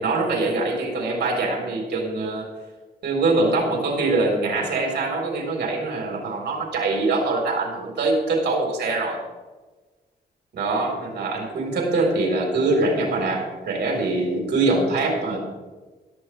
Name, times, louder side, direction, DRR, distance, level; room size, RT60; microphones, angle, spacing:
voice 1, 0.0-2.5 3.0-9.2 10.5-15.4, right 3 dB, 75° right, -1 dB, 3.9 m, -23 dB
17.0 x 13.0 x 3.3 m, 1.2 s
cardioid pair, 90°, 17 cm